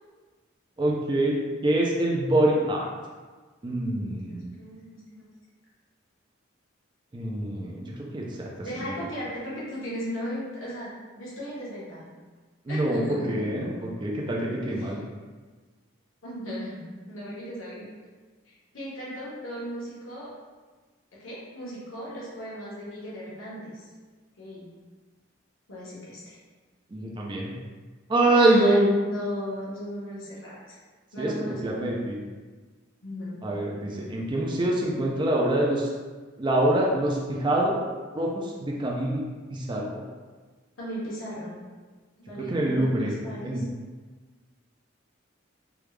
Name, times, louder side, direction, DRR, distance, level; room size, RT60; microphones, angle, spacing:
voice 1, 0.8-2.9 3.6-4.4 7.1-7.9 8.1-8.5 8.8-8.9 12.7-15.0 26.9-27.5 28.1-28.9 31.2-32.2 33.4-35.9 36.4-37.8 38.1-39.2 39.5-40.0 42.4-43.1 43.4-43.6, right 1 dB, 25° right, -3 dB, 0.4 m, -25 dB
voice 2, 3.7-5.3 8.6-10.9 11.1-12.1 12.7-13.3 14.7-15.0 16.2-16.8 17.1-17.9 18.7-20.3 21.2-23.9 24.4-24.6 25.7-26.4 28.3-30.8 31.1-31.8 33.0-33.3 40.8-41.6 42.3-43.7, equal, 80° left, -7 dB, 1.0 m, -37 dB
3.4 x 2.3 x 3.1 m, 1.4 s
head